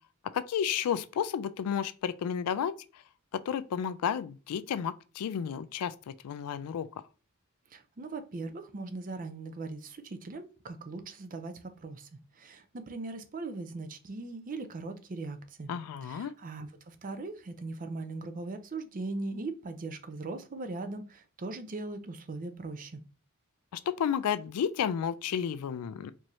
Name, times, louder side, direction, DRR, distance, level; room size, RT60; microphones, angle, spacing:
voice 1, 0.3-2.7 3.3-6.9 15.7-16.3 23.7-26.1, left 8 dB, 90° left, 0.3 m, -32 dB
voice 2, 7.7-15.7 16.0-23.0, right 3 dB, 40° right, 0.5 m, -39 dB
4.5 x 2.7 x 3.0 m
head